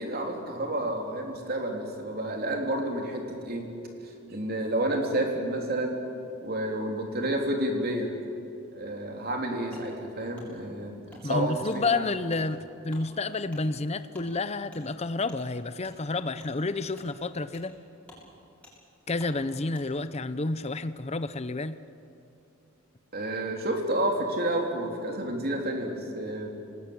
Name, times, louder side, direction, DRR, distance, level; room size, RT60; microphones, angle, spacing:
voice 1, 0.0-3.7 4.3-6.0 6.4-8.1 8.7-12.1 23.1-26.5, right 1 dB, 50° right, 2 dB, 3.7 m, -30 dB
Wood, 9.7-9.9 10.3-10.5 11.1-11.2 11.7-11.8 12.3-12.4 12.9-13.0 13.5-13.6 14.1-14.3 14.7-14.8 15.3-15.4 15.8-15.9 16.4-16.5 16.9-17.1 17.5-17.7 18.0-18.2 18.6-18.7 19.2-19.3 19.7-19.9, left 2 dB, 5° left, 6.7 m, -51 dB
voice 2, 11.2-17.7 19.1-21.8, left 3 dB, 30° left, 12 dB, 0.8 m, -30 dB
26.0 x 19.5 x 8.8 m, 2.7 s
head